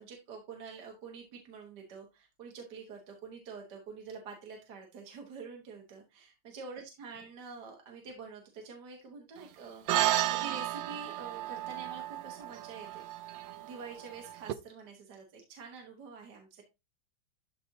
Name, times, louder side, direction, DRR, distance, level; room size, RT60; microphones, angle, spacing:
voice 1, 0.0-13.0 13.6-16.6, right 5 dB, 55° right, 1 dB, 1.7 m, -47 dB
sound 1, 9.9-14.5, right 14 dB, 75° right, 1.2 m, -33 dB
12.0 x 4.2 x 2.7 m, 0.25 s
omnidirectional pair, 2.3 m